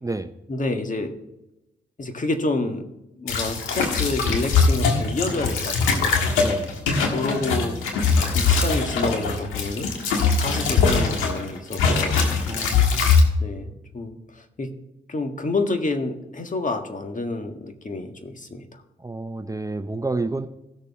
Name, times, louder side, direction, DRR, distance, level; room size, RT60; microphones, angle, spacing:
voice 1, 0.5-1.1 2.0-2.8 3.2-6.2 7.0-8.0 8.4-9.9 10.4-12.4 13.4-14.7 15.1-18.8, left 2 dB, 40° left, 5 dB, 1.7 m, -29 dB
sound 1, 3.3-11.4 11.7-13.2, left 5 dB, 85° left, 1.6 m, -21 dB
voice 2, 12.5-13.2 19.0-20.5, right 2 dB, 15° right, 9 dB, 0.7 m, -29 dB
16.5 x 6.7 x 3.6 m, 0.91 s
hypercardioid pair, 40°, 20 cm